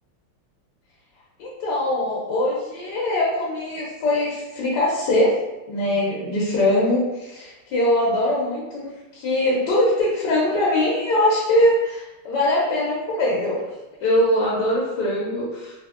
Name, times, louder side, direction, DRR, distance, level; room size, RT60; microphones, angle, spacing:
voice 1, 1.4-5.4 5.7-13.6 14.0-15.8, left 1 dB, 70° left, -5 dB, 1.1 m, -22 dB
3.3 x 2.7 x 2.4 m, 0.99 s
omnidirectional pair, 2.3 m